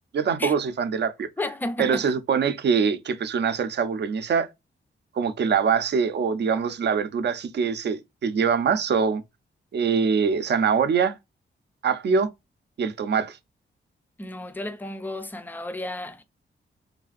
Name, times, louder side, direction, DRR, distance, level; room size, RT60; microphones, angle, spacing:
voice 1, 0.1-1.3 1.8-4.5 5.1-9.2 9.7-11.2 11.8-12.3 12.8-13.4, right 6 dB, 60° right, 0.5 m, -23 dB
voice 2, 1.4-2.0 14.2-16.2, left 1 dB, 10° left, 0.3 m, -32 dB
3.3 x 2.5 x 2.3 m
wide cardioid pair, 165°, 20 cm